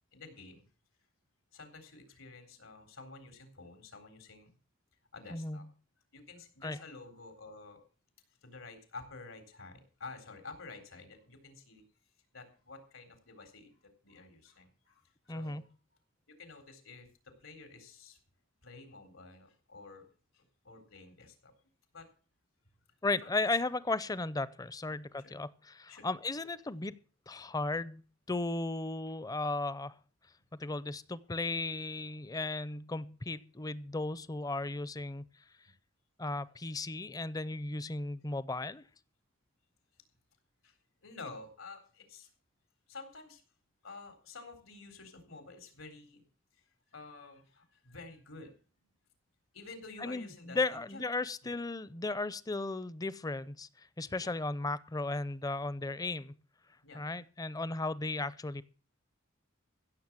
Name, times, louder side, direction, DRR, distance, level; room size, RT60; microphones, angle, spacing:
voice 1, 0.1-0.7 1.5-4.5 5.1-5.7 6.1-7.8 8.4-11.8 12.3-15.7 16.3-18.2 18.6-20.0 20.3-21.5 21.9-22.1 23.2-23.4 25.2-25.3 25.9-26.1 40.6-42.3 42.9-43.4 43.8-46.2 46.9-48.5 49.5-50.6 50.9-51.0 51.4-51.6 54.1-54.3 56.8-57.0, left 3 dB, 85° left, 3.8 m, -50 dB
voice 2, 15.3-15.6 23.0-27.0 27.3-28.0 28.3-30.0 30.5-35.2 36.2-38.8 50.0-56.3 56.9-58.6, left 2 dB, 20° left, 0.5 m, -35 dB
16.0 x 7.1 x 7.4 m
head